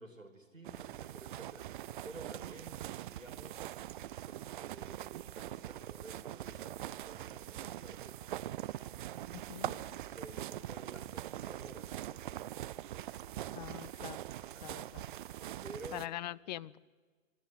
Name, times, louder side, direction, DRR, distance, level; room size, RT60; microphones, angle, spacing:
voice 1, 0.0-3.7 4.2-8.2 9.1-13.0 14.5-14.9 15.6-16.0 16.4-16.6, right 1 dB, 90° right, 5 dB, 3.2 m, -53 dB
sound 1, 0.6-16.1, right 13 dB, 40° right, 0.6 m, -43 dB
voice 2, 9.3-9.7 13.5-14.2 14.6-15.1 15.9-16.8, left 14 dB, 35° left, 23 dB, 0.6 m, -43 dB
25.0 x 14.0 x 9.7 m, 1.5 s
figure-of-eight pair, 110°, 38 cm